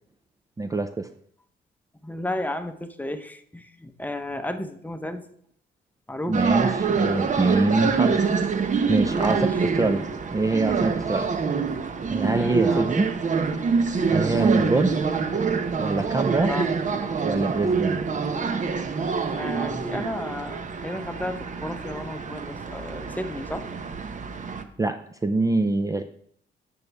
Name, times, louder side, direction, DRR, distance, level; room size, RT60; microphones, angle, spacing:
voice 1, 0.6-1.1 6.3-8.2 8.9-11.3 12.1-13.1 14.1-15.0 15.8-16.5 17.2-18.0 19.6-19.8 24.8-26.0, right 3 dB, 15° right, 8 dB, 0.5 m, -24 dB
voice 2, 2.0-5.3 6.1-6.4 9.2-9.5 12.2-12.9 14.2-14.6 16.5-16.7 19.3-23.7, left 1 dB, 10° left, 8 dB, 0.9 m, -33 dB
sound 1, 6.3-24.6, right 5 dB, 40° right, 0.9 m, -26 dB
10.5 x 7.0 x 3.5 m, 0.66 s
cardioid pair, 90°, 20 cm